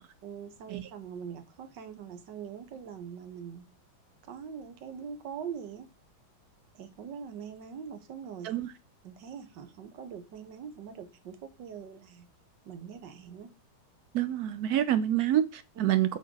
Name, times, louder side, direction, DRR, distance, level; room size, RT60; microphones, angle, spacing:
voice 1, 0.2-3.7 4.2-5.9 6.8-8.5 9.0-12.3 12.7-13.5 15.8-16.0, right 7 dB, 65° right, 1.7 m, -42 dB
voice 2, 14.1-16.2, right 11 dB, 85° right, 0.8 m, -27 dB
8.2 x 6.4 x 3.8 m
omnidirectional pair, 2.2 m